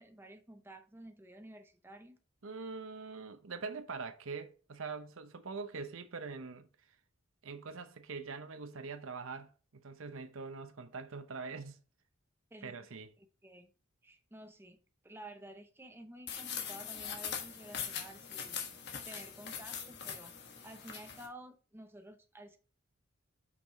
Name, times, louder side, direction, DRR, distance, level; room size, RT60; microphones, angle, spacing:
voice 1, 0.0-2.2 12.5-13.7 14.0-14.8 15.0-20.3 20.6-22.6, right 1 dB, 10° right, 0.6 m, -52 dB
voice 2, 2.4-6.7 7.4-11.8 12.6-13.1, right 4 dB, 75° right, 0.7 m, -43 dB
sound 1, 16.3-21.3, left 7 dB, 55° left, 1.3 m, -42 dB
5.8 x 4.8 x 4.1 m
head